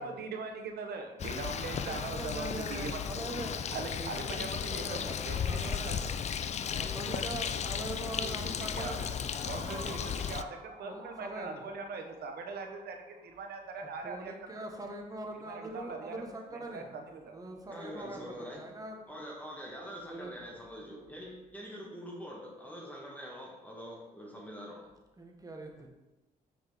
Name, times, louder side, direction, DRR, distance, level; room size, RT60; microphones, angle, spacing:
voice 1, 0.0-3.0 3.7-6.0 6.8-7.2 8.2-9.0 9.5-10.0 10.3-14.7 15.5-16.2 16.7-17.4, right 4 dB, 75° right, 4 dB, 1.0 m, -41 dB
Bird, 1.2-10.4, left 7 dB, 45° left, 0.4 m, -35 dB
sound 1, 1.4-13.7, right 2 dB, 45° right, 1.7 m, -54 dB
voice 2, 1.6-5.2 5.4-6.1 6.8-10.2 10.8-11.7 14.0-19.2 20.1-20.6 20.9-21.3 25.2-25.9, right 2 dB, 20° right, 1 dB, 1.2 m, -43 dB
voice 3, 17.7-18.6 19.1-24.9, equal, 10° left, -3 dB, 1.7 m, -44 dB
6.1 x 5.1 x 3.5 m, 1.1 s
cardioid pair, 85°, 16 cm